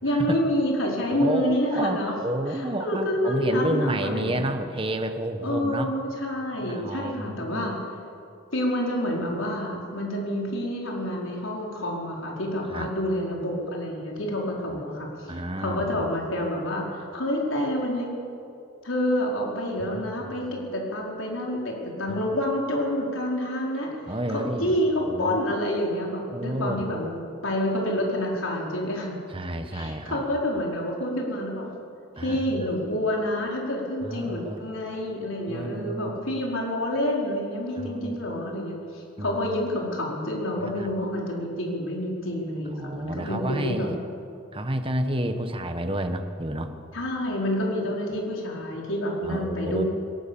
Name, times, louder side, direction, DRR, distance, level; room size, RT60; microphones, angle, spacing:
voice 1, 0.0-2.1 2.5-4.5 5.4-7.7 8.5-18.1 18.8-23.9 24.3-29.2 29.7-31.7 32.2-43.9 46.9-49.8, left 1 dB, 75° left, -2 dB, 4.8 m, -28 dB
voice 2, 1.1-5.9 6.6-7.7 12.7-12.9 14.7-14.8 15.3-16.1 19.8-20.1 22.2-22.3 24.1-24.8 25.1-25.5 26.3-26.9 29.3-30.2 32.2-32.7 34.0-34.6 35.5-36.2 37.8-38.2 39.2-39.4 40.6-40.9 42.8-44.0 44.5-46.7 49.2-49.8, right 1 dB, 25° right, 7 dB, 1.4 m, -30 dB
22.5 x 21.0 x 7.2 m, 2.5 s
head